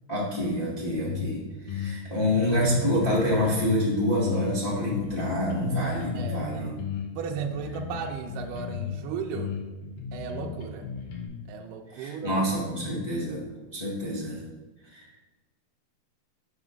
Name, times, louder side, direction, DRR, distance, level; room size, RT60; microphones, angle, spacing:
voice 1, 0.1-6.7 11.9-13.4 13.7-14.4 14.8-15.2, left 1 dB, 55° left, -7 dB, 0.4 m, -27 dB
sound 1, 1.1-1.3 1.7-3.9 4.2-6.4 6.8-9.0 9.3-11.3, left 8 dB, 75° left, 2.8 m, -35 dB
voice 2, 6.1-6.8 7.2-9.5 10.1-10.9 11.5-12.4, right 6 dB, 80° right, 2 dB, 2.1 m, -35 dB
5.9 x 5.5 x 6.1 m, 1.2 s
omnidirectional pair, 4.0 m